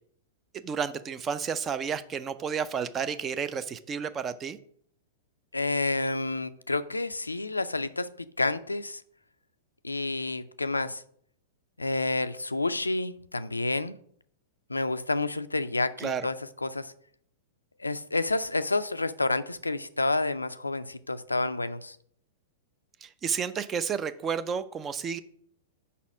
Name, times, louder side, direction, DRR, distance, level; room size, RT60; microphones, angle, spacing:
voice 1, 0.5-4.6 16.0-16.3 23.0-25.2, right 7 dB, 25° right, 13 dB, 0.4 m, -31 dB
voice 2, 5.5-9.0 9.8-11.0 11.8-13.9 14.7-16.3 16.6-16.9 17.8-22.0, left 2 dB, 90° left, 13 dB, 0.3 m, -29 dB
5.5 x 4.2 x 5.9 m, 0.65 s
figure-of-eight pair, 100°, 0 cm